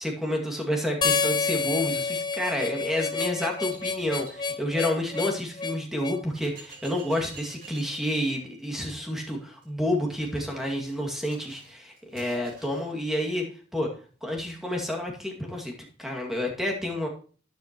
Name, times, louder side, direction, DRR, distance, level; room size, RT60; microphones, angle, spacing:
voice 1, 0.0-13.4 13.7-13.9 14.2-15.7 16.0-17.1, left 1 dB, ahead, 0 dB, 2.2 m, -29 dB
Harmonica, 1.0-6.2, left 5 dB, 20° left, 0.6 m, -28 dB
sound 1, 1.5-5.3 5.9-6.0 6.4-12.9, right 3 dB, 50° right, 6.6 m, -50 dB
12.5 x 9.6 x 3.0 m, 0.40 s
head